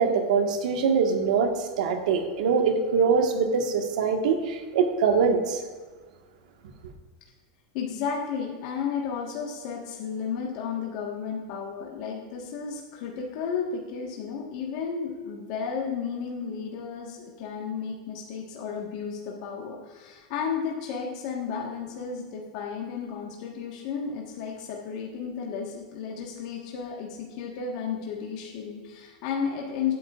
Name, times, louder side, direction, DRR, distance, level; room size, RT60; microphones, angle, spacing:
voice 1, 0.0-5.6, right 5 dB, 80° right, 4 dB, 1.4 m, -23 dB
voice 2, 7.7-29.9, left 6 dB, 50° left, -1 dB, 1.4 m, -33 dB
16.0 x 9.2 x 2.4 m, 1.4 s
supercardioid pair, 165°, 4 cm